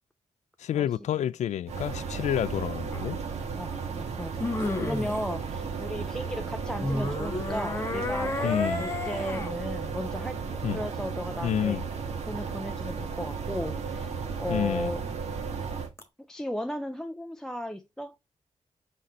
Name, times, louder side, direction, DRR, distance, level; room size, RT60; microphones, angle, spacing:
voice 1, 0.6-3.2 8.4-8.9 10.6-10.8 11.4-11.8 14.5-14.9, left 10 dB, 80° left, 0.4 m, -29 dB
sound 1, 1.7-15.9, right 5 dB, 70° right, 1.7 m, -34 dB
sound 2, 2.9-3.0 4.4-5.2 6.8-9.6 16.0-16.1, left 2 dB, 20° left, 1.2 m, -31 dB
voice 2, 3.6-4.5 4.8-11.8 12.3-14.1 14.4-15.3 16.2-18.2, equal, 5° left, 0.4 m, -36 dB
6.2 x 4.1 x 4.3 m
wide cardioid pair, 165°, 12 cm